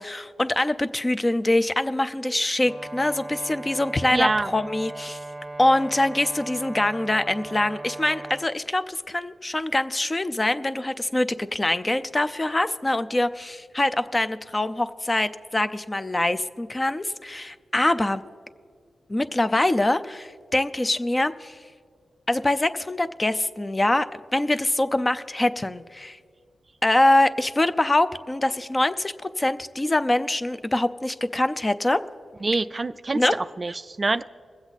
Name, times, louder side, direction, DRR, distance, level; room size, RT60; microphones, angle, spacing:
voice 1, 0.0-5.2 5.6-18.2 19.1-21.6 22.3-24.1 24.3-26.2 26.8-32.0 33.1-33.4, left 1 dB, 25° left, 11 dB, 0.5 m, -24 dB
Brass instrument, 2.6-8.5, right 2 dB, 15° right, 0.8 m, -38 dB
voice 2, 4.1-4.5 32.4-34.2, right 3 dB, 35° right, 13 dB, 0.3 m, -26 dB
21.5 x 7.9 x 4.1 m, 2.1 s
cardioid pair, 75°, 0 cm